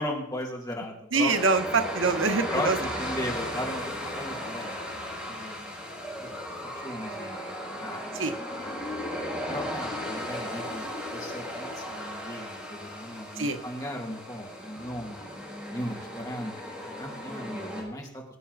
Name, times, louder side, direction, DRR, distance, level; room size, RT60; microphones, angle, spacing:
voice 1, 0.0-1.3 2.5-5.0 5.3-5.8 6.2-6.4 6.8-7.4 7.8-8.7 9.5-10.8 11.1-15.3 15.7-16.5 16.8-18.2, left 1 dB, 20° left, -1 dB, 2.3 m, -37 dB
voice 2, 1.1-2.8 8.1-8.4 13.4-13.6, right 4 dB, 90° right, 8 dB, 1.0 m, -25 dB
sound 1, 1.3-17.8, equal, 5° right, 5.8 m, -36 dB
21.5 x 8.6 x 4.1 m, 0.83 s
head